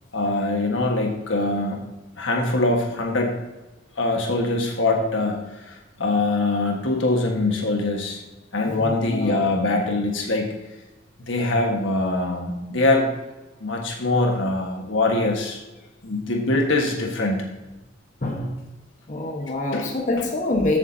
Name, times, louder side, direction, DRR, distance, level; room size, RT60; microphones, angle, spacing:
voice 1, 0.1-1.8 2.2-3.3 4.0-8.2 8.5-10.5 11.2-13.1 13.6-15.6 16.0-17.5 19.7-19.9, left 2 dB, 80° left, 1 dB, 1.5 m, -23 dB
voice 2, 8.6-9.5 18.2-18.5 19.1-20.8, left 2 dB, 40° left, 0 dB, 1.2 m, -26 dB
14.5 x 7.5 x 2.8 m, 1.1 s
head